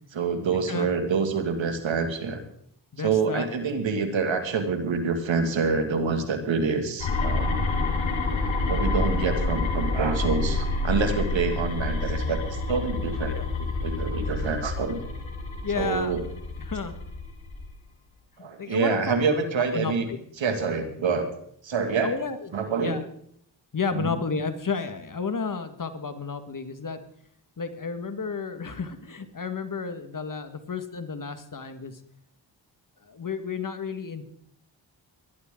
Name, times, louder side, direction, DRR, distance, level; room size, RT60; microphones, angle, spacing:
voice 1, 0.1-2.4 3.0-7.5 8.7-13.3 13.6-15.0 15.8-16.2 18.4-20.1 20.4-21.3 21.6-22.1 22.5-23.0 23.9-24.0, right 5 dB, 75° right, 7 dB, 2.3 m, -26 dB
voice 2, 2.9-3.5 13.2-13.5 15.6-16.2 16.6-16.9 18.4-19.2 19.7-20.2 22.0-23.0 23.7-27.0 27.6-32.0 33.0-34.2, left 5 dB, 45° left, 9 dB, 1.8 m, -32 dB
sound 1, 7.0-17.7, left 3 dB, 80° left, 4.2 m, -28 dB
19.0 x 11.5 x 3.8 m, 0.68 s
cardioid pair, 45°, 46 cm